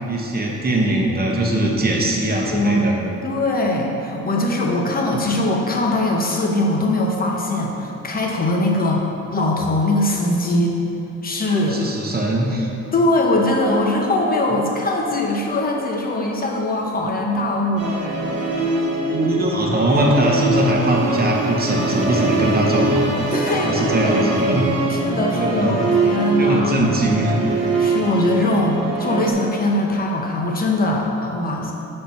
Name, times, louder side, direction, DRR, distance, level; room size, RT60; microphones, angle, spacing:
voice 1, 0.1-3.0 11.7-12.7 19.1-23.2 23.6-24.7 25.3-25.9 26.4-27.4, right 1 dB, 30° right, -1 dB, 1.0 m, -21 dB
voice 2, 2.3-2.9 3.2-10.8 11.2-11.8 12.9-18.0 23.3-24.5 24.9-26.8 27.8-31.7, left 1 dB, 30° left, 0 dB, 1.0 m, -21 dB
Musical instrument, 17.8-29.3, right 3 dB, 55° right, 1.3 m, -22 dB
5.0 x 4.4 x 5.9 m, 2.8 s
cardioid pair, 90°, 30 cm